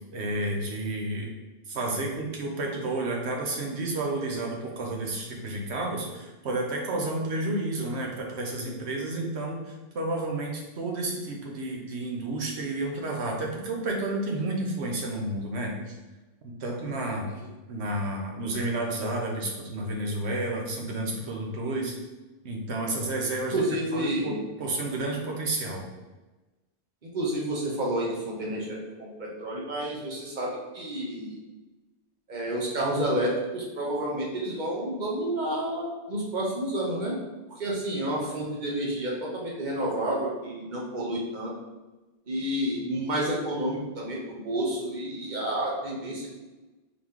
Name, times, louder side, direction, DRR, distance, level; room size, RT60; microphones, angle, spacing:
voice 1, 0.1-1.3 1.7-15.9 16.4-17.3 17.7-21.9 22.4-23.6 23.9-25.8, right 2 dB, 90° right, 0 dB, 1.1 m, -31 dB
voice 2, 23.5-24.4 27.1-31.4 32.3-37.2 37.6-41.5 42.3-46.3, right 1 dB, 45° right, -3 dB, 1.1 m, -30 dB
4.1 x 3.0 x 3.6 m, 1.1 s
omnidirectional pair, 1.1 m